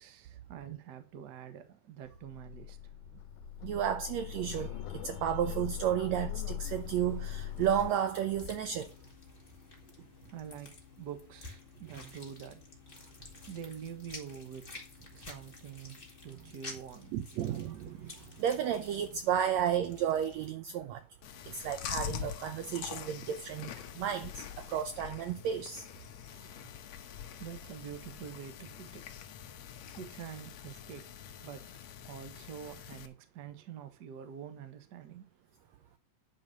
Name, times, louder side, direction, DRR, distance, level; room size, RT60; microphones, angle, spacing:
voice 1, 0.0-2.9 10.3-12.6 12.9-13.1 13.5-14.7 15.1-17.2 27.0-27.1 27.4-29.1 30.0-31.1 31.4-31.7 32.0-35.3, right 8 dB, 50° right, 1.2 m, -46 dB
sound 1, 2.1-7.9, left 12 dB, 90° left, 2.3 m, -41 dB
voice 2, 3.6-8.9 17.1-21.0 21.5-25.8, right 9 dB, 80° right, 1.6 m, -33 dB
sound 2, 6.6-20.5, left 3 dB, 20° left, 1.9 m, -51 dB
Chewing mastication, 21.2-33.1, left 9 dB, 70° left, 2.0 m, -45 dB
10.5 x 5.4 x 6.0 m
omnidirectional pair, 3.8 m